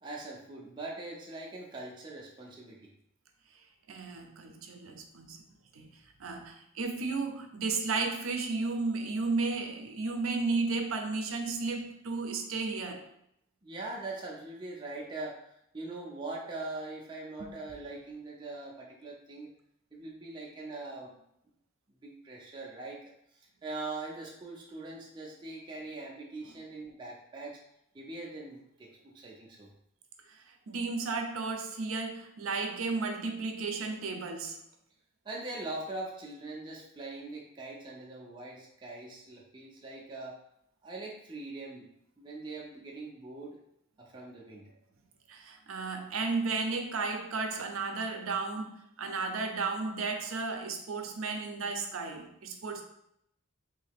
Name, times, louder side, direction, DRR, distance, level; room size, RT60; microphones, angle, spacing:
voice 1, 0.0-2.8 13.6-15.4 15.7-19.5 19.9-21.1 22.0-23.1 23.6-27.6 27.9-29.7 35.2-40.4 40.8-41.9 42.2-43.6 44.0-44.6, right 2 dB, 20° right, -3 dB, 0.5 m, -42 dB
voice 2, 3.9-5.4 5.7-5.9 6.2-13.0 17.4-17.5 26.5-26.6 30.3-34.6 45.3-52.8, right 4 dB, 90° right, 5 dB, 0.5 m, -33 dB
3.1 x 2.7 x 3.5 m, 0.75 s
head